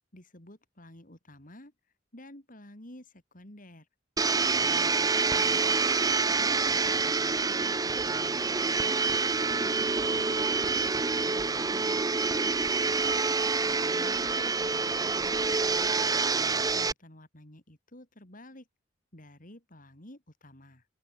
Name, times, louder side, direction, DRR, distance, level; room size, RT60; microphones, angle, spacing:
voice 1, 0.1-1.7 2.1-3.9 4.6-5.7 6.2-11.0 11.2-12.0 12.4-13.0 13.6-15.9 16.4-18.7 19.1-20.9, left 1 dB, 45° left, 5.1 m, -51 dB
Domestic sounds home sounds, 4.2-16.9, right 4 dB, 20° right, 0.7 m, -27 dB
open air
head